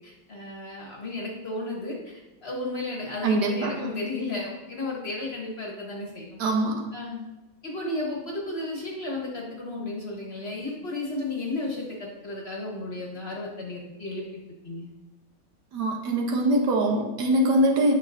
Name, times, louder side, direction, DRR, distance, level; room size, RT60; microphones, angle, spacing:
voice 1, 0.0-6.4 6.9-7.2 7.6-14.9, left 2 dB, 40° left, -2 dB, 1.2 m, -33 dB
voice 2, 3.2-3.7 6.4-6.9 15.7-17.9, right 1 dB, 70° right, 1 dB, 1.5 m, -23 dB
9.2 x 5.7 x 2.6 m, 1.1 s
omnidirectional pair, 2.0 m